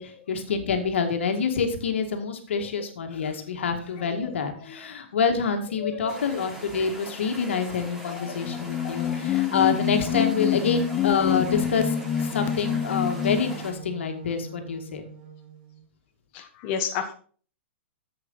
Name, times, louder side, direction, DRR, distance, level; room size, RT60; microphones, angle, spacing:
voice 1, 0.0-15.0, left 5 dB, 75° left, 5 dB, 2.0 m, -27 dB
voice 2, 5.8-6.2 8.0-8.4 8.8-9.2 16.3-17.1, left 7 dB, 45° left, 3 dB, 1.2 m, -33 dB
sound 1, 6.1-13.7, equal, 5° right, 3.3 m, -42 dB
sound 2, 8.3-13.6, left 11 dB, 25° left, 0.4 m, -26 dB
Wind instrument woodwind instrument, 11.2-15.8, right 5 dB, 45° right, 2.2 m, -42 dB
10.0 x 7.9 x 4.0 m, 0.42 s
hypercardioid pair, 125°, 6 cm